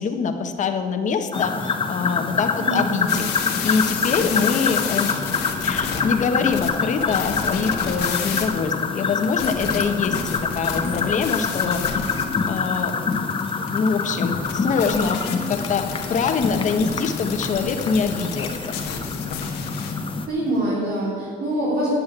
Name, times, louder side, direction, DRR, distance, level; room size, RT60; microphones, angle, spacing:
voice 1, 0.0-3.3 3.6-5.2 5.6-12.9 13.4-15.2 15.5-18.8, left 5 dB, 45° left, 6 dB, 1.3 m, -24 dB
sound 1, 1.3-20.3, left 5 dB, 30° left, 1.0 m, -26 dB
voice 2, 2.6-3.1 19.7-21.9, right 1 dB, 70° right, -7 dB, 3.6 m, -26 dB
sound 2, 3.1-6.0 6.5-8.5 9.2-19.9, left 7 dB, 85° left, 1.6 m, -31 dB
10.0 x 7.9 x 8.8 m, 2.1 s
cardioid pair, 110°, 17 cm